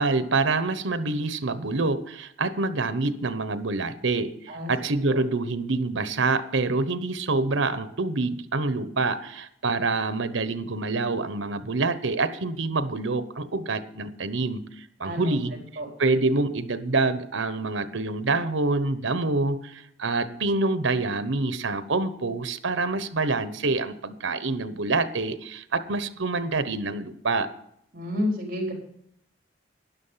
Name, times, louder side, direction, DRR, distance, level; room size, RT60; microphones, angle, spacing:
voice 1, 0.0-4.3 4.7-15.5 16.0-27.5, right 3 dB, 85° right, 13 dB, 1.0 m, -26 dB
voice 2, 15.0-15.9 27.9-28.7, left 1 dB, 45° right, 0 dB, 4.4 m, -30 dB
12.5 x 10.5 x 5.7 m, 0.71 s
head